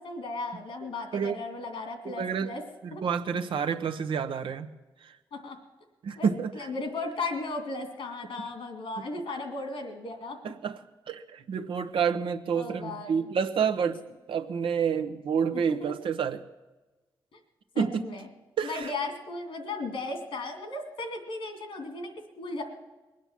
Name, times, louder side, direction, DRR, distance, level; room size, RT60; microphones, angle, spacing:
voice 1, 0.0-2.6 2.9-3.0 5.3-5.6 6.2-6.3 6.5-10.4 12.5-13.3 15.5-15.9 17.3-17.4 17.7-18.2 18.6-22.6, left 3 dB, 90° left, 5 dB, 2.6 m, -36 dB
voice 2, 2.0-2.5 3.0-4.7 6.0-6.5 10.4-10.8 11.1-14.0 14.3-16.4 17.8-18.1 18.6-18.9, right 6 dB, 90° right, 8 dB, 0.9 m, -28 dB
21.5 x 8.9 x 7.4 m, 1.2 s
cardioid pair, 75°, 9 cm